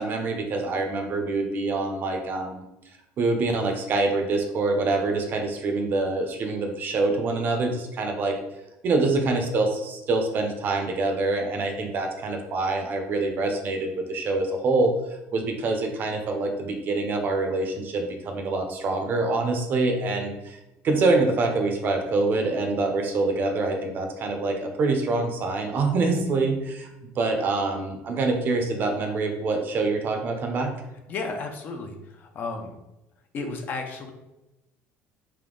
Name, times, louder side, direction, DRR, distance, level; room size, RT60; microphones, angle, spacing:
voice 1, 0.0-2.6 3.2-8.4 8.8-14.9 15.3-26.9 27.2-30.7, right 3 dB, 40° right, 4 dB, 0.6 m, -25 dB
voice 2, 31.1-32.8 33.3-34.1, left 3 dB, 40° left, 4 dB, 0.5 m, -33 dB
3.5 x 2.7 x 3.8 m, 0.95 s
cardioid pair, 150°, 5 cm